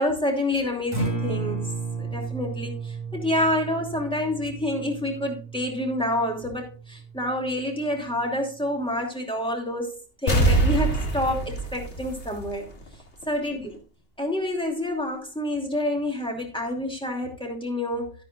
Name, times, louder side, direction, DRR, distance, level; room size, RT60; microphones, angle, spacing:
voice 1, 0.0-1.6 2.0-10.0 10.2-12.7 13.3-13.8 14.2-18.1, left 1 dB, 5° left, 1 dB, 2.7 m, -28 dB
Acoustic guitar, 0.8-9.0, right 4 dB, 20° left, 4.5 m, -34 dB
sound 1, 10.3-12.9 13.2-13.3, right 2 dB, 70° left, 2.3 m, -23 dB
11.5 x 10.5 x 2.4 m, 0.34 s
omnidirectional pair, 1.2 m